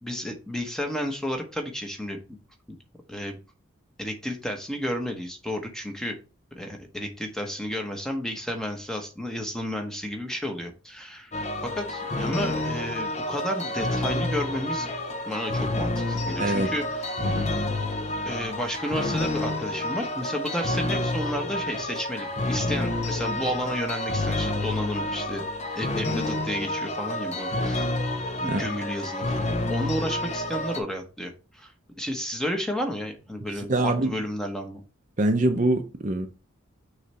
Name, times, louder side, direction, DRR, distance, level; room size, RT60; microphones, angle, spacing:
voice 1, 0.0-2.2 3.1-3.4 4.0-6.2 6.5-11.3 11.6-14.9 15.2-17.0 18.2-25.5 25.7-27.9 28.4-34.8, equal, 5° left, 1.0 m, -32 dB
sound 1, 11.3-30.8, left 2 dB, 30° left, 0.7 m, -29 dB
voice 2, 16.4-16.7 17.2-17.5 28.4-28.7 33.5-34.1 35.2-36.3, right 1 dB, 40° right, 0.6 m, -24 dB
6.4 x 3.2 x 5.5 m
head